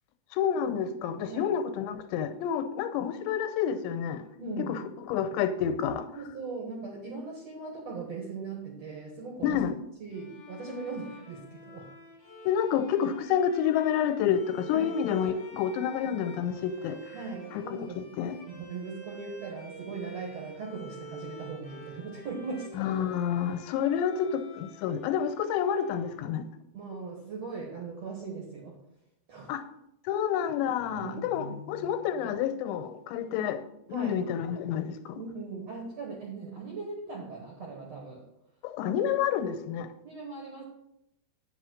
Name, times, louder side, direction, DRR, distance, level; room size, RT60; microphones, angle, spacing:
voice 1, 0.3-4.2 4.6-4.8 5.1-6.1 9.4-9.7 12.4-17.2 17.7-18.4 22.8-26.4 29.5-29.6 30.1-33.6 33.9-35.2 38.6-39.9, left 8 dB, 90° left, 3.0 m, -29 dB
voice 2, 1.3-1.6 4.4-4.8 6.1-9.6 10.0-11.9 14.7-14.9 17.1-18.0 18.5-22.7 26.7-28.8 29.3-29.5 30.9-31.5 33.9-34.2 35.2-38.2 40.0-40.6, right 4 dB, 60° right, 1.8 m, -39 dB
Bowed string instrument, 10.1-26.7, right 1 dB, 45° left, 1.5 m, -48 dB
8.9 x 5.6 x 6.3 m
omnidirectional pair, 5.0 m